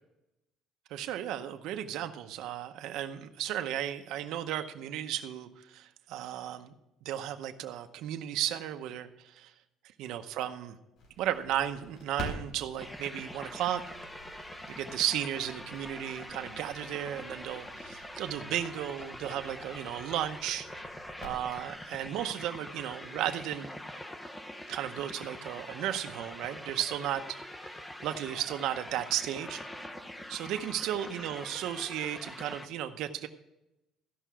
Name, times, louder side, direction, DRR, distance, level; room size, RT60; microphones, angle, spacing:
voice 1, 0.9-6.7 7.0-9.5 10.0-10.8 11.2-13.8 14.7-20.7 21.2-23.7 24.7-27.4 28.0-29.6 30.3-33.3, right 11 dB, 75° right, 7 dB, 0.7 m, -34 dB
Crackle, 11.0-22.2, equal, 60° left, 4.0 m, -48 dB
sound 1, 12.8-32.7, left 1 dB, 10° left, 0.6 m, -44 dB
14.5 x 5.6 x 6.1 m, 0.90 s
cardioid pair, 145°, 0 cm